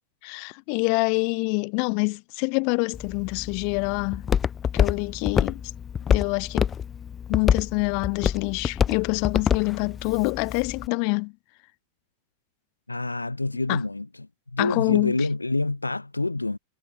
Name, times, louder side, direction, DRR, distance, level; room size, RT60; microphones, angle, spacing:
voice 1, 0.2-4.3 4.7-5.6 6.1-6.7 7.3-11.3 13.7-13.8 14.6-15.3, left 40 dB or more, 45° left, 3.5 m, -26 dB
Walk footsteps, 2.9-10.9, left 8 dB, 25° left, 1.4 m, -27 dB
voice 2, 12.9-16.6, left 2 dB, 85° left, 2.7 m, -27 dB
figure-of-eight pair, 90°, 0 cm